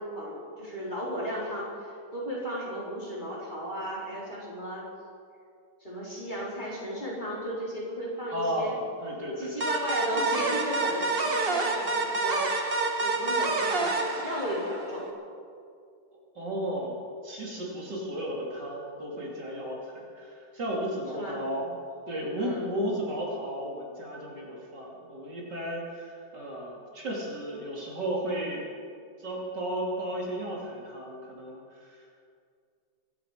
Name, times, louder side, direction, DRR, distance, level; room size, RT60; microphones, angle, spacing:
voice 1, 0.0-1.7 2.1-4.8 5.8-8.7 9.4-15.1 21.1-21.4 22.4-22.7, equal, 20° left, -6 dB, 4.3 m, -35 dB
voice 2, 8.3-9.5 16.3-17.0 17.2-21.8 22.1-28.6 29.2-32.2, equal, 60° right, -3 dB, 3.4 m, -34 dB
sound 1, 9.6-15.0, right 3 dB, 30° right, 1.4 m, -28 dB
24.5 x 11.0 x 5.1 m, 2.3 s
omnidirectional pair, 2.2 m